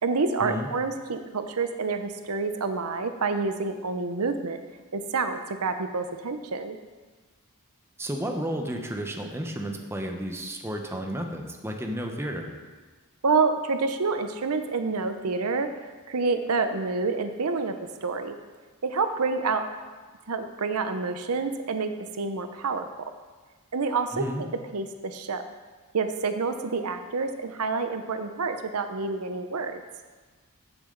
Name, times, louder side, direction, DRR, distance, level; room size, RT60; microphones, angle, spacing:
voice 1, 0.0-4.6 4.9-6.8 13.2-15.7 16.1-17.7 18.0-18.4 18.8-19.6 20.3-21.9 22.2-22.9 23.7-24.5 24.7-25.4 25.9-29.8, right 4 dB, 75° right, 8 dB, 0.7 m, -28 dB
voice 2, 8.0-12.5 24.1-24.4, equal, 10° right, 2 dB, 1.0 m, -32 dB
15.5 x 7.1 x 3.9 m, 1.4 s
head